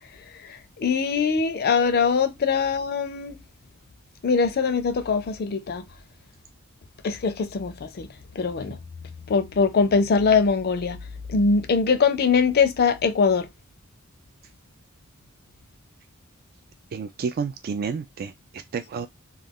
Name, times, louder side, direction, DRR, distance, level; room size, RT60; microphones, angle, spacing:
voice 1, 0.4-3.4 4.2-5.8 7.0-8.1 8.4-8.8 9.3-11.0 11.3-13.5, left 5 dB, 50° left, 0.4 m, -22 dB
voice 2, 16.9-19.1, right 5 dB, 45° right, 0.3 m, -30 dB
2.4 x 2.3 x 3.4 m
head